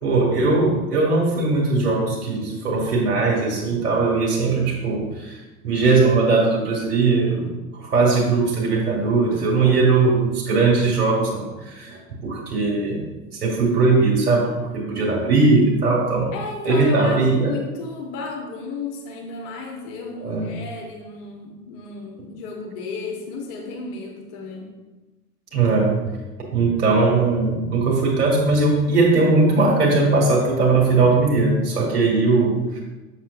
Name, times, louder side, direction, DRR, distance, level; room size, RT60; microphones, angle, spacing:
voice 1, 0.0-7.5 7.7-13.0 13.3-16.3 16.6-17.5 20.2-20.5 25.5-26.0 26.5-32.8, right 3 dB, 70° right, -2 dB, 1.9 m, -19 dB
voice 2, 16.3-24.7, left 4 dB, 40° left, 1 dB, 1.1 m, -33 dB
6.9 x 6.6 x 2.5 m, 1.2 s
figure-of-eight pair, 80°, 47 cm